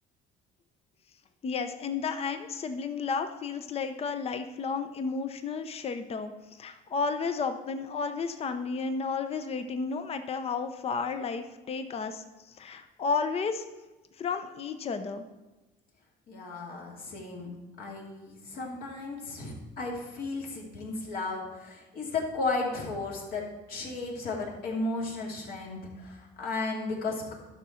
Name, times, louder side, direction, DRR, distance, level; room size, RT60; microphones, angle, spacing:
voice 1, 1.4-13.6 14.2-15.3, left 5 dB, 35° left, 8 dB, 0.7 m, -32 dB
voice 2, 16.3-17.5 17.8-27.3, left 3 dB, 60° left, -1 dB, 2.6 m, -34 dB
11.5 x 6.3 x 4.3 m, 1.1 s
cardioid pair, 110°, 17 cm